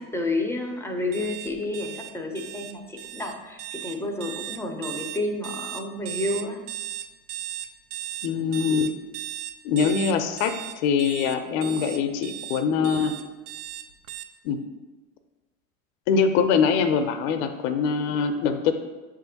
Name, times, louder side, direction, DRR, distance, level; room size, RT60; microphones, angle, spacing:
voice 1, 0.0-6.6, left 2 dB, 5° left, 2 dB, 0.5 m, -30 dB
sound 1, 1.1-14.2, right 13 dB, 75° right, 0.5 m, -36 dB
voice 2, 8.2-8.9 9.6-13.1 14.4-14.6 16.1-18.7, left 6 dB, 65° left, 8 dB, 0.6 m, -23 dB
7.2 x 2.5 x 2.7 m, 1.2 s
hypercardioid pair, 95°, 43 cm